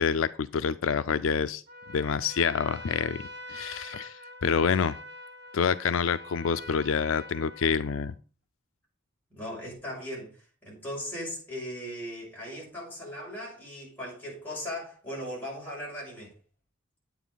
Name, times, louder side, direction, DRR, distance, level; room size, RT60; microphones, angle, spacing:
voice 1, 0.0-1.6 1.9-3.2 3.5-5.0 5.5-8.1, left 6 dB, 75° left, 0.4 m, -27 dB
Trumpet, 1.7-8.1, left 1 dB, 55° right, 1.2 m, -44 dB
voice 2, 9.3-16.3, equal, 10° left, 6.3 m, -38 dB
9.1 x 9.0 x 3.9 m
head